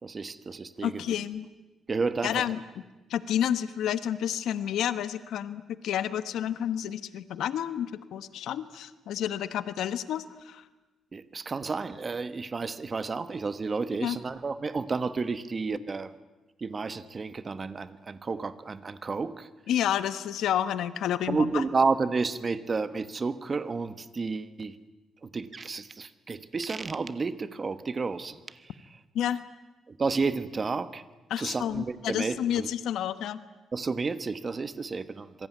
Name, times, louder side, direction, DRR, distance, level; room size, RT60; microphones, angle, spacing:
voice 1, 0.0-1.0 1.9-2.4 11.1-16.1 16.6-19.5 21.3-24.7 25.2-28.6 29.9-31.0 31.4-32.7 33.7-35.5, right 4 dB, 25° right, 13 dB, 1.2 m, -31 dB
voice 2, 0.8-1.5 2.2-2.6 3.1-10.6 14.0-14.2 19.7-21.6 29.1-29.4 31.3-33.4, left 10 dB, 75° left, 13 dB, 1.1 m, -30 dB
26.5 x 23.0 x 9.4 m, 1.1 s
cardioid pair, 150°, 0 cm